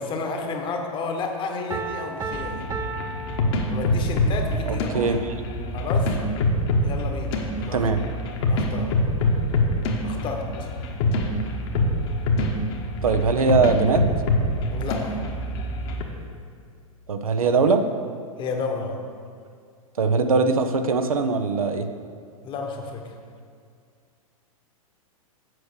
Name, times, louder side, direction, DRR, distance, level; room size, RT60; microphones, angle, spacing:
voice 1, 0.0-2.6 3.7-5.2 5.7-6.1 6.8-7.9 8.5-9.0 10.0-10.7 14.7-15.2 18.4-19.0 22.4-23.2, left 4 dB, 25° left, 3 dB, 1.2 m, -31 dB
Piano, 1.7-4.3, right 3 dB, 15° right, 0.7 m, -34 dB
sound 1, 2.3-16.0, left 1 dB, 45° left, 1.4 m, -25 dB
voice 2, 4.7-5.2 7.7-8.0 13.0-14.1 17.1-17.8 20.0-21.9, right 4 dB, 70° right, 7 dB, 0.8 m, -21 dB
7.8 x 6.5 x 6.6 m, 2.2 s
figure-of-eight pair, 105°, 18 cm